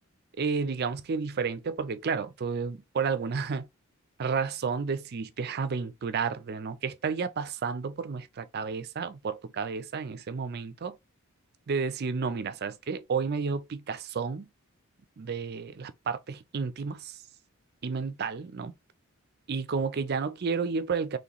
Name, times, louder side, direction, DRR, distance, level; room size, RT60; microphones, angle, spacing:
voice 1, 0.4-3.7 4.2-11.0 11.7-14.5 15.2-17.2 17.8-18.7 19.5-21.2, right 5 dB, 45° right, 0.4 m, -31 dB
3.2 x 2.9 x 3.9 m
head